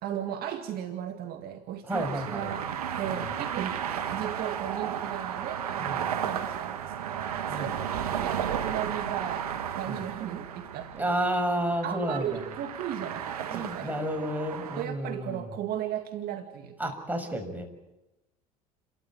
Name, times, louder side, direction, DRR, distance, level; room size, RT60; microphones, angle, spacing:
voice 1, 0.0-7.8 8.2-11.1 11.8-13.9 14.8-16.9, right 10 dB, 55° right, 6 dB, 2.1 m, -36 dB
voice 2, 1.9-2.5 3.1-3.2 5.8-6.1 7.5-7.7 9.9-10.0 11.0-12.4 13.5-15.4 16.8-17.7, right 1 dB, 10° right, 5 dB, 6.4 m, -31 dB
sound 1, 1.9-14.9, right 9 dB, 90° right, 1.5 m, -34 dB
30.0 x 14.0 x 8.8 m, 0.97 s
hypercardioid pair, 75°, 19 cm